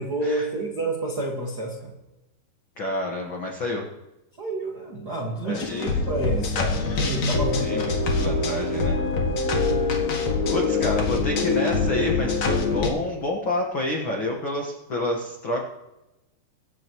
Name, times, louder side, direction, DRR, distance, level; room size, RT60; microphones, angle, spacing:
voice 1, 0.0-1.9 4.4-7.9, right 2 dB, 55° right, -3 dB, 1.1 m, -29 dB
voice 2, 2.8-3.9 5.4-5.9 7.6-9.0 10.5-15.6, left 2 dB, 75° left, 0 dB, 1.1 m, -28 dB
sound 1, 5.5-12.9, left 3 dB, 50° left, 2.6 m, -24 dB
23.5 x 12.0 x 3.1 m, 0.99 s
omnidirectional pair, 4.8 m